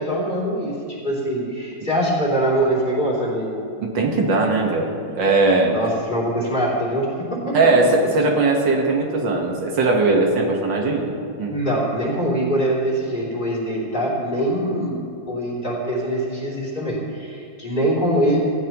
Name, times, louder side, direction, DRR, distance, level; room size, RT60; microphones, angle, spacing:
voice 1, 0.0-3.6 5.7-7.6 11.5-15.0 15.3-18.4, right 1 dB, 25° left, -5 dB, 3.3 m, -23 dB
voice 2, 3.8-5.8 7.5-11.1 11.4-11.5, right 3 dB, 75° right, 1 dB, 2.1 m, -19 dB
17.5 x 15.5 x 3.0 m, 2.4 s
omnidirectional pair, 2.0 m